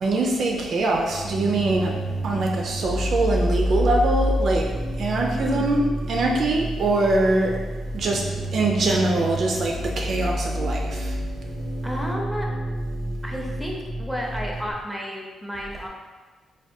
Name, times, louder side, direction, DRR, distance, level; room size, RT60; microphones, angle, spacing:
voice 1, 0.0-1.9 2.2-4.7 5.0-5.8 6.1-7.6 7.9-8.3 8.5-11.1, right 2 dB, 60° right, 0 dB, 0.3 m, -23 dB
sound 1, 1.0-14.7, right 1 dB, 75° left, 1.0 m, -28 dB
voice 2, 5.4-5.8 11.8-12.5 13.2-15.9, equal, 5° right, -1 dB, 0.5 m, -32 dB
3.4 x 2.2 x 2.6 m, 1.3 s
cardioid pair, 90°, 0 cm